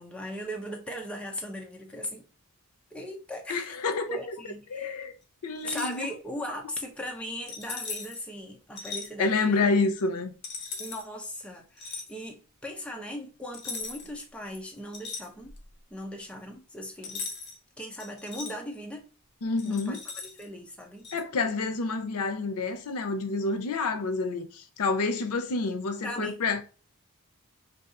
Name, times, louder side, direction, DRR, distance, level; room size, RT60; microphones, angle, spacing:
voice 1, 0.0-2.2 2.9-3.8 4.1-5.0 5.6-9.6 10.8-15.5 15.9-17.3 17.8-19.1 19.6-21.1 26.0-26.4, equal, 5° left, 0.4 m, -38 dB
voice 2, 3.5-4.1 4.7-5.1 5.4-6.1 9.2-10.3 19.4-20.0 21.1-26.6, left 3 dB, 80° left, 0.5 m, -28 dB
sound 1, 5.6-6.0 7.5-8.2 8.8-9.1 10.4-11.0 11.8-12.1 13.5-14.2 14.5-15.7 17.0-17.6 18.0-18.5 19.6-20.4 21.0-21.2, left 4 dB, 50° left, 0.7 m, -38 dB
2.7 x 2.3 x 3.6 m
head